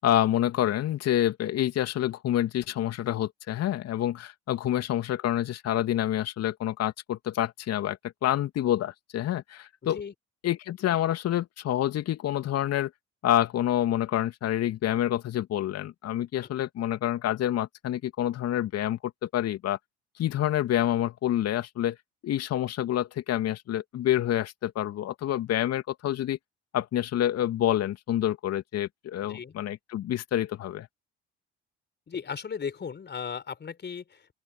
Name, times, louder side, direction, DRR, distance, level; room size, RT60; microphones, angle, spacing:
voice 1, 0.0-10.0 10.4-12.9 13.2-19.8 20.2-22.0 22.2-26.4 26.7-30.9, left 12 dB, 50° left, 2.8 m, -27 dB
voice 2, 9.8-10.1 16.4-16.5 29.2-29.5 32.1-34.3, left 6 dB, 35° left, 4.4 m, -36 dB
open air
figure-of-eight pair, 55°, 32 cm